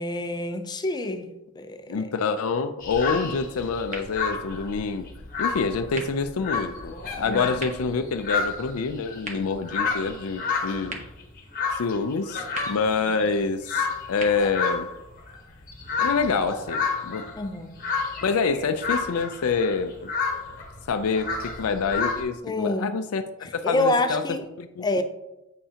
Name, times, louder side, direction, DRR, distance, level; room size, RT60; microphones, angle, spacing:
voice 1, 0.0-2.1 7.3-7.5 17.4-17.8 22.4-22.9 23.4-24.5 24.8-25.0, left 2 dB, 20° left, 0.5 m, -27 dB
voice 2, 1.9-5.0 5.4-11.0 11.7-14.9 16.0-17.3 18.2-20.1 20.9-23.2 23.5-24.2 24.6-24.9, left 4 dB, 80° left, 0.4 m, -26 dB
sound 1, 2.8-22.2, left 5 dB, 40° left, 1.1 m, -31 dB
sound 2, 3.9-15.8, right 2 dB, 35° right, 1.1 m, -45 dB
8.4 x 5.5 x 2.8 m
head